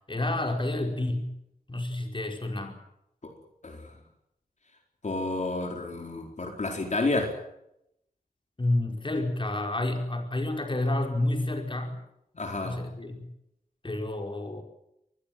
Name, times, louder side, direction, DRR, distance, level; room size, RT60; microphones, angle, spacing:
voice 1, 0.1-1.3 1.7-2.8 8.6-12.0 12.6-13.3 13.8-14.6, left 1 dB, 35° left, 4 dB, 5.0 m, -29 dB
voice 2, 3.6-3.9 5.0-7.4 12.3-12.9, left 2 dB, 55° left, 2 dB, 4.3 m, -30 dB
24.5 x 20.5 x 7.8 m, 0.81 s
wide cardioid pair, 75°, 15 cm